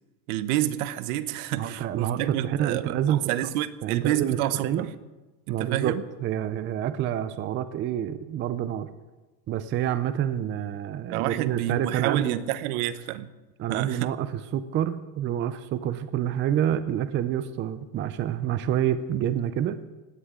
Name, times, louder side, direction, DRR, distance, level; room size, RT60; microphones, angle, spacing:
voice 1, 0.3-4.9 5.5-6.0 11.1-13.3 13.7-14.1, right 13 dB, 60° right, 14 dB, 1.0 m, -29 dB
voice 2, 1.6-3.3 3.8-4.4 4.6-4.9 5.5-8.9 9.5-12.4 13.6-19.8, right 10 dB, 25° right, 12 dB, 0.6 m, -28 dB
20.0 x 16.5 x 3.8 m, 1.1 s
supercardioid pair, 135°, 50 cm